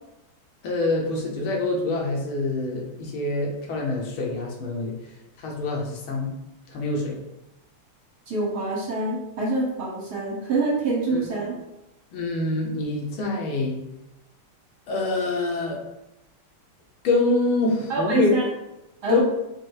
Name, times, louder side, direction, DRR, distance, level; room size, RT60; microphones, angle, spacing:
voice 1, 0.6-5.0 5.4-6.3 6.7-7.2 11.1-11.3 12.1-13.8 14.9-15.8 17.0-18.3 19.1-19.2, left 2 dB, 75° left, -1 dB, 1.7 m, -25 dB
voice 2, 8.3-11.6 17.9-18.5 19.0-19.2, right 2 dB, 55° right, -5 dB, 1.4 m, -25 dB
4.7 x 2.0 x 4.6 m, 0.91 s
omnidirectional pair, 2.3 m